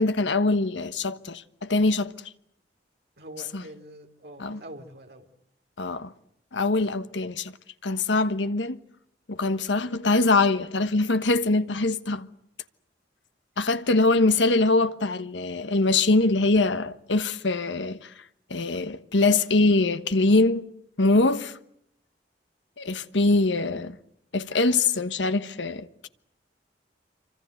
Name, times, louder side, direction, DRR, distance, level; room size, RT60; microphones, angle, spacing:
voice 1, 0.0-2.1 3.5-3.6 4.4-4.6 5.8-6.1 6.5-7.5 7.8-8.8 9.3-12.3 13.6-18.1 18.5-20.6 21.0-21.6 22.8-24.0 24.3-26.1, left 3 dB, 85° left, 1.2 m, -23 dB
voice 2, 3.2-5.3 14.0-14.9, right 1 dB, 60° right, 3.3 m, -45 dB
27.0 x 25.5 x 8.1 m
head